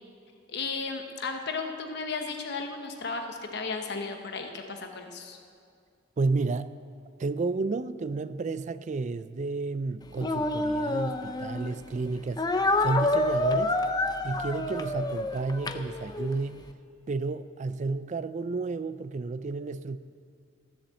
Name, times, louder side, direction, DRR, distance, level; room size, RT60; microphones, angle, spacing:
voice 1, 0.5-5.4, left 4 dB, 60° left, 1.0 m, -34 dB
voice 2, 6.2-6.7 7.2-12.5 12.8-13.8 14.2-16.7 17.1-20.0, right 3 dB, 40° right, 0.4 m, -31 dB
Speech, 10.2-11.7 12.4-16.4, left 2 dB, 20° left, 0.5 m, -28 dB
13.5 x 7.2 x 7.7 m
head